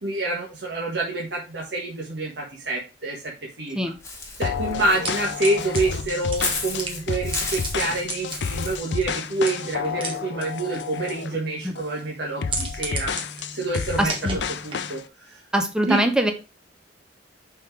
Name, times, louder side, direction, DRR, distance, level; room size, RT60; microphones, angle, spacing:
voice 1, 0.0-3.9 4.4-13.1 13.5-15.4 15.9-16.0, right 2 dB, 65° right, -2 dB, 1.5 m, -27 dB
Walk footsteps / Bird, 4.0-8.8, left 3 dB, 15° left, 1.9 m, -33 dB
sound 1, 4.4-11.4 11.8-12.0 12.4-15.0, left 6 dB, 70° left, 0.5 m, -30 dB
sound 2, 4.9-15.0, right 2 dB, 30° right, 1.7 m, -36 dB
voice 2, 14.0-14.4 15.5-16.3, right 1 dB, 5° right, 6 dB, 0.9 m, -22 dB
5.7 x 4.6 x 4.6 m, 0.29 s
head